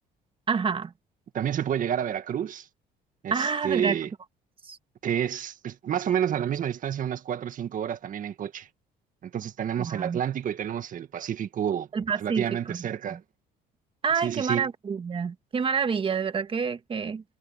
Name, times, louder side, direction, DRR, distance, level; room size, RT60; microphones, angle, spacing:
voice 1, 0.5-0.9 3.3-4.0 4.6-4.8 9.8-10.2 11.9-12.8 13.1-13.2 14.0-17.2, right 6 dB, 30° right, 1.5 m, -28 dB
voice 2, 1.3-2.7 3.2-4.1 5.0-8.7 9.2-11.9 12.2-13.2 14.2-14.7, right 9 dB, 50° right, 1.8 m, -29 dB
cardioid pair, 110°, 17 cm